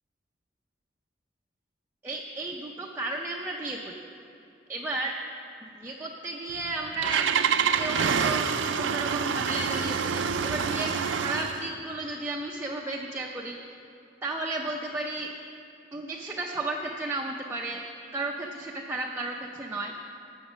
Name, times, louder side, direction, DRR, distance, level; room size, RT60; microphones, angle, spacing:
voice 1, 2.0-4.1 4.7-5.1 5.7-7.3 7.8-13.6 14.2-15.3 15.9-17.8 18.1-20.0, right 2 dB, 15° right, -1 dB, 0.5 m, -33 dB
Engine starting, 6.5-11.7, right 6 dB, 80° right, 0.5 m, -27 dB
11.5 x 7.1 x 6.1 m, 2.8 s
head